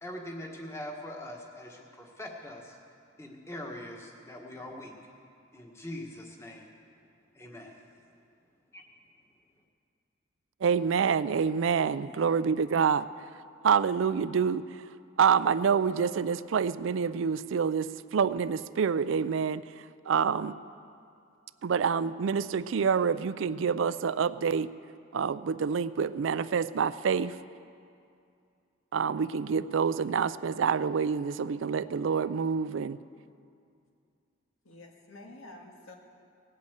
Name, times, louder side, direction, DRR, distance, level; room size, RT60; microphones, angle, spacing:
voice 1, 0.0-2.8 3.2-4.9 5.5-6.7 7.3-7.7 8.7-8.8, left 1 dB, 15° left, 1 dB, 1.5 m, -42 dB
voice 2, 10.6-13.1 13.6-14.6 15.2-19.6 20.1-20.6 21.6-24.7 25.1-27.4 28.9-33.0, right 6 dB, 70° right, 15 dB, 0.4 m, -27 dB
voice 3, 11.8-12.3 34.6-36.0, left 2 dB, 85° left, 1 dB, 1.9 m, -49 dB
18.5 x 8.3 x 8.1 m, 2.5 s
head